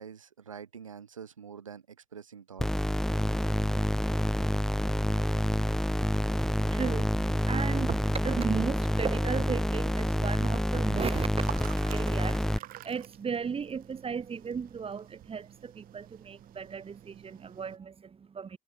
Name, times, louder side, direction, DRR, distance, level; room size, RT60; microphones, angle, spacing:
voice 1, 0.0-2.8, right 7 dB, 90° right, 2.5 m, -46 dB
sound 1, 2.6-12.6, equal, 5° left, 1.0 m, -28 dB
voice 2, 6.6-18.6, right 6 dB, 35° right, 3.2 m, -35 dB
sound 2, 10.7-17.8, right 15 dB, 60° right, 6.3 m, -48 dB
hypercardioid pair, 55°, 16 cm